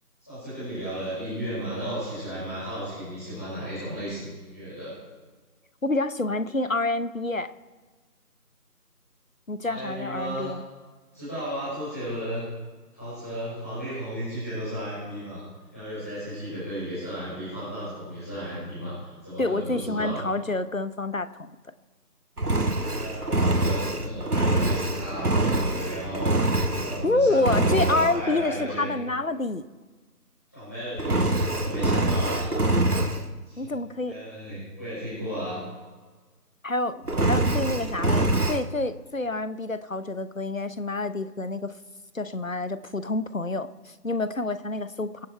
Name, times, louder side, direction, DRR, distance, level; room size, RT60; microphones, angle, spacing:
voice 1, 0.2-4.9 9.6-10.5 11.1-12.5 12.9-15.4 15.7-18.9 19.2-20.2 22.9-26.3 26.7-28.9 30.5-32.5 33.4-33.7 34.0-35.6, equal, 10° left, -13 dB, 4.9 m, -34 dB
voice 2, 5.8-7.5 9.5-10.6 19.4-21.6 27.0-29.7 33.6-34.2 36.6-41.7 42.1-45.3, left 2 dB, 55° left, 14 dB, 0.9 m, -28 dB
Engine, 22.4-27.1 27.4-28.2 31.0-33.3 37.1-38.6, right 2 dB, 70° right, 1.6 m, -24 dB
24.0 x 8.0 x 4.4 m, 1.4 s
figure-of-eight pair, 175°, 47 cm